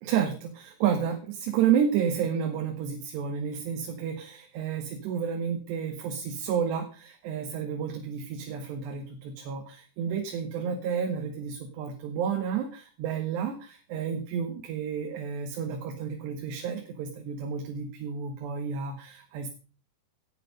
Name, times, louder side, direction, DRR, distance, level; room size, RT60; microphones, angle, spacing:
voice 1, 0.0-19.5, right 7 dB, 85° right, 4 dB, 3.8 m, -31 dB
18.0 x 8.9 x 5.3 m, 0.37 s
omnidirectional pair, 4.7 m